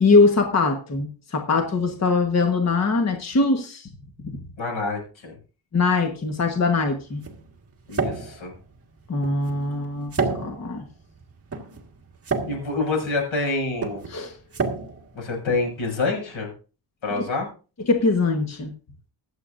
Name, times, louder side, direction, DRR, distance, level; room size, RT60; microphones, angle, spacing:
voice 1, 0.0-3.9 5.7-7.2 9.1-10.8 14.1-14.4 17.1-17.2 17.9-18.7, left 3 dB, 35° left, 4 dB, 1.3 m, -22 dB
voice 2, 4.6-5.3 7.9-8.5 12.4-14.0 15.1-16.5 17.0-17.5, left 3 dB, 85° left, 1 dB, 6.5 m, -27 dB
sound 1, 6.3-16.1, right 4 dB, 30° right, 1.7 m, -32 dB
23.5 x 8.0 x 2.6 m, 0.34 s
wide cardioid pair, 175°, 46 cm